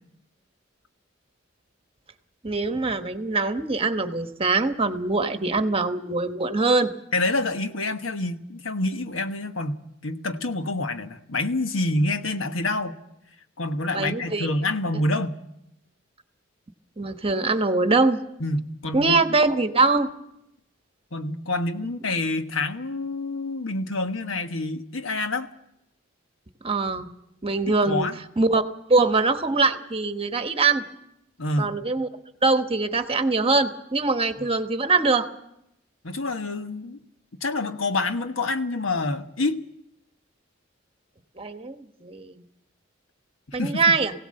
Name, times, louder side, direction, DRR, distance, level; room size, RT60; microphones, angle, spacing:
voice 1, 2.4-6.9 13.9-14.5 17.0-18.2 18.9-20.1 26.6-27.1 27.4-28.1 28.4-28.6 28.9-30.8 31.6-32.1 32.4-35.3 41.4-42.3 43.5-44.1, right 3 dB, 30° right, 8 dB, 1.2 m, -23 dB
voice 2, 7.1-13.0 13.6-15.4 18.4-19.4 21.1-25.5 27.7-28.2 31.4-31.7 36.0-37.0 37.4-39.6 43.5-43.9, left 2 dB, 90° left, 7 dB, 1.3 m, -27 dB
21.0 x 17.0 x 7.7 m, 0.81 s
head